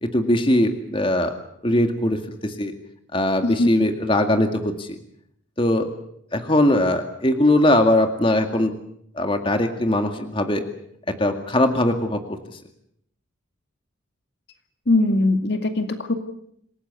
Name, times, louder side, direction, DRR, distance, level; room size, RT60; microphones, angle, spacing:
voice 1, 0.0-1.3 1.6-2.7 3.1-5.0 5.6-5.9 6.3-8.7 9.2-10.6 11.2-12.4, left 1 dB, 25° left, 6 dB, 2.1 m, -20 dB
voice 2, 14.9-16.1, left 2 dB, 55° left, 7 dB, 2.1 m, -20 dB
27.5 x 18.0 x 8.3 m, 0.73 s
head